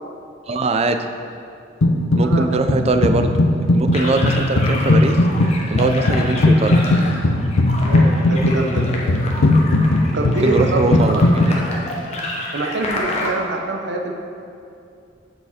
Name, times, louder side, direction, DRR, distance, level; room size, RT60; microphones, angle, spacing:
voice 1, 0.5-1.1 2.2-3.4 3.7-5.2 5.7-6.8 10.3-11.2, right 3 dB, 30° right, 8 dB, 0.4 m, -21 dB
sound 1, 1.8-2.4 2.7-11.5, left 2 dB, 85° left, 0.6 m, -17 dB
sound 2, 3.9-13.3, left 1 dB, 35° left, 1.0 m, -29 dB
voice 2, 3.9-4.2 7.8-8.8 10.1-10.8 11.1-11.2 11.5-11.6 12.5-14.1, right 2 dB, 60° right, 2 dB, 0.8 m, -25 dB
7.2 x 6.6 x 4.3 m, 2.5 s
head